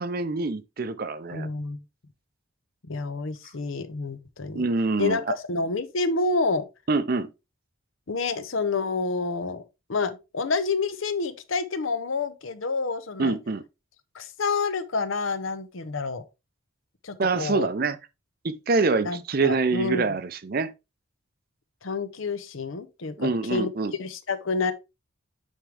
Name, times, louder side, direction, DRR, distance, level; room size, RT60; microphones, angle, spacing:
voice 1, 0.0-1.5 4.5-5.2 6.9-7.3 13.2-13.6 17.2-18.0 18.4-20.7 23.2-23.9, right 3 dB, 45° right, 0.6 m, -25 dB
voice 2, 1.3-1.8 2.9-4.7 5.0-6.7 8.1-9.6 9.9-13.4 14.1-16.2 17.0-17.7 19.0-20.1 21.8-23.7 24.0-24.7, left 4 dB, 80° left, 0.8 m, -28 dB
8.9 x 3.7 x 3.3 m
head